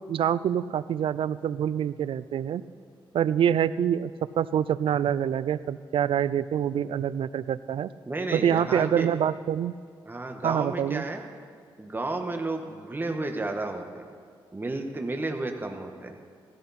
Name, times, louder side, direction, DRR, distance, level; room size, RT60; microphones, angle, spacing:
voice 1, 0.1-2.6 3.1-7.9 8.3-9.7 10.4-11.0, right 9 dB, 70° right, 17 dB, 0.4 m, -26 dB
voice 2, 8.1-9.1 10.0-11.2 11.8-14.0 14.5-16.1, right 2 dB, 20° right, 4 dB, 1.4 m, -32 dB
16.5 x 14.5 x 4.3 m, 2.1 s
cardioid pair, 90°, 9 cm